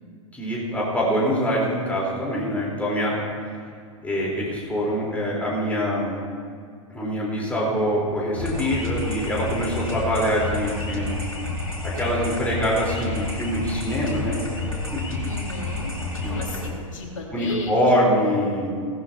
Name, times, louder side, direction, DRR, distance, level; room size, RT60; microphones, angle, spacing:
voice 1, 0.3-3.3 4.0-6.1 6.9-11.2 11.8-14.4 16.2-16.4 17.3-18.7, equal, 10° left, -5 dB, 3.9 m, -24 dB
sound 1, 8.3-16.7, left 2 dB, 85° left, 3.0 m, -30 dB
voice 2, 15.2-16.0 16.3-17.8 18.5-18.7, left 2 dB, 70° left, -1 dB, 2.7 m, -35 dB
18.0 x 13.0 x 2.9 m, 2.2 s
figure-of-eight pair, 95°, 17 cm